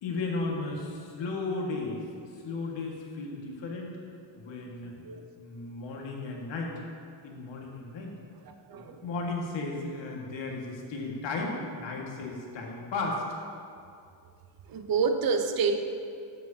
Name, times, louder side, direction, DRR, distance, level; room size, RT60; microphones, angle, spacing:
voice 1, 0.0-2.0 2.4-4.0 4.4-4.9 5.4-6.7 7.2-8.2 8.8-13.2, left 3 dB, 70° left, -1 dB, 1.8 m, -35 dB
voice 2, 4.8-5.2 8.4-9.1 14.7-15.8, right 5 dB, 50° right, 7 dB, 0.7 m, -28 dB
12.5 x 7.9 x 2.8 m, 2.4 s
cardioid pair, 115°, 45 cm